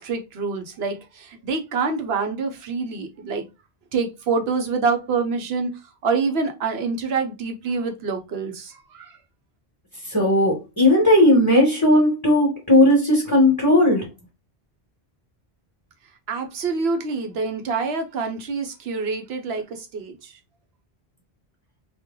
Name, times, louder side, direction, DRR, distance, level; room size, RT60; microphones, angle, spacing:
voice 1, 0.0-3.4 3.9-5.7 6.0-9.2 16.3-20.3, right 4 dB, 80° right, 1.0 m, -26 dB
voice 2, 10.1-14.1, left 1 dB, 20° left, 1.2 m, -17 dB
3.1 x 2.5 x 3.6 m
omnidirectional pair, 1.0 m